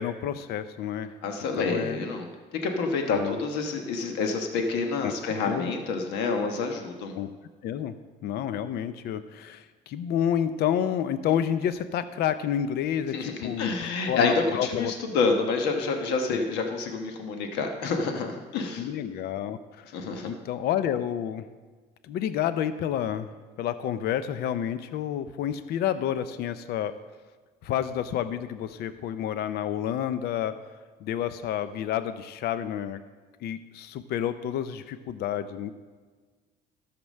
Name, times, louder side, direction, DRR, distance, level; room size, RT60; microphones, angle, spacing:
voice 1, 0.0-1.1 1.6-2.0 3.1-3.4 5.0-5.7 7.1-7.3 7.6-8.0 8.2-14.9 18.8-19.9 20.2-21.5 22.0-23.3 23.6-26.9 27.6-30.6 31.0-33.0 33.4-35.7, left 10 dB, 70° left, 12 dB, 0.6 m, -29 dB
voice 2, 1.2-2.3 2.6-7.1 13.1-18.9 19.9-20.3, left 4 dB, 90° left, 4 dB, 1.2 m, -28 dB
13.0 x 6.0 x 6.4 m, 1.4 s
cardioid pair, 110°, 17 cm